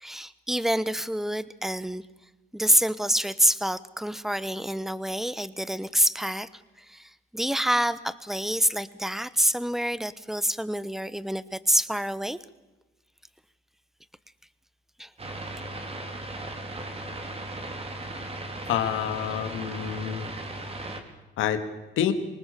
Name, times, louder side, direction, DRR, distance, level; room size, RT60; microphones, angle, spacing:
voice 1, 0.0-2.0 2.5-6.5 6.9-12.4 15.0-15.1, equal, ahead, 16 dB, 1.0 m, -27 dB
sound 1, 15.2-21.0, right 2 dB, 30° right, 3.3 m, -37 dB
voice 2, 18.7-20.3 21.4-21.6 22.0-22.1, left 10 dB, 85° left, 8 dB, 2.1 m, -27 dB
25.5 x 19.0 x 6.8 m, 1.1 s
cardioid pair, 90°, 20 cm